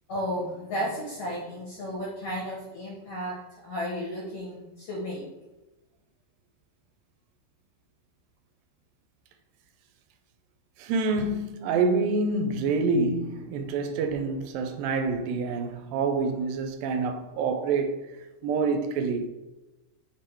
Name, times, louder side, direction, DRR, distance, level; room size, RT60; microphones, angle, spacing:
voice 1, 0.1-3.4 3.6-5.2, equal, 65° left, 1.6 m, -33 dB
voice 2, 10.8-18.0 18.4-19.3, right 4 dB, 80° right, 2.2 m, -27 dB
6.0 x 3.8 x 4.4 m
omnidirectional pair, 4.2 m